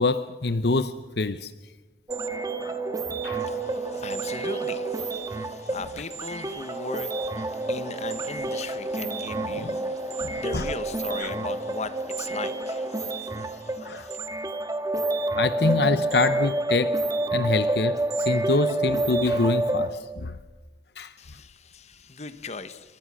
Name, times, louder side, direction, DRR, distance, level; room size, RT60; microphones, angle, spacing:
voice 1, 0.0-1.5 2.6-2.8 3.2-3.5 9.5-9.7 10.2-10.6 11.2-11.3 13.8-14.1 15.3-17.0 17.3-20.3 21.0-21.1, left 3 dB, 65° left, 0.8 m, -26 dB
sound 1, 2.1-19.9, right 2 dB, 20° right, 1.7 m, -29 dB
voice 2, 3.3-14.2 21.2-23.0, left 3 dB, 40° left, 1.3 m, -38 dB
27.5 x 25.0 x 6.3 m
head